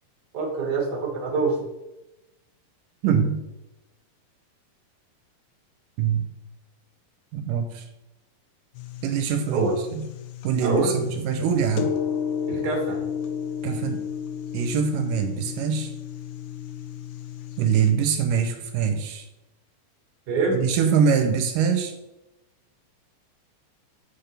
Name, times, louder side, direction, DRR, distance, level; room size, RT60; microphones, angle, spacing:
voice 1, 0.3-1.6 9.5-9.7 10.6-11.0 12.5-13.0 20.3-20.6, right 3 dB, 35° right, -1 dB, 2.0 m, -25 dB
voice 2, 3.0-3.4 6.0-6.3 7.3-7.8 9.0-9.7 10.0-10.1 10.4-11.9 13.6-14.0 14.5-15.9 17.6-19.3 20.5-21.9, right 7 dB, 85° right, 7 dB, 2.3 m, -23 dB
sound 1, 8.8-17.9, left 8 dB, 80° left, 2.1 m, -33 dB
7.9 x 6.8 x 3.3 m, 0.94 s
omnidirectional pair, 3.8 m